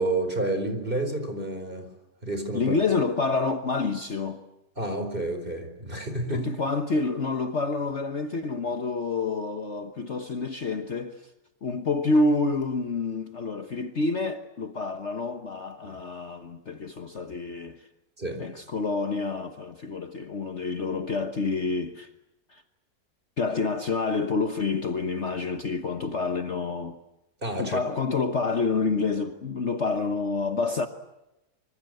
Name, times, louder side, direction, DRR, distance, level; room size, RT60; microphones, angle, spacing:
voice 1, 0.0-1.9 2.2-2.7 4.8-6.5 15.8-15.9 18.2-18.5 27.4-27.8, right 2 dB, 30° right, 4.5 m, -30 dB
voice 2, 2.5-4.4 6.3-11.3 11.6-17.9 18.4-22.1 22.5-22.6 23.4-27.0 27.6-30.9, left 3 dB, 45° left, 1.4 m, -28 dB
26.0 x 25.5 x 7.8 m
omnidirectional pair, 1.8 m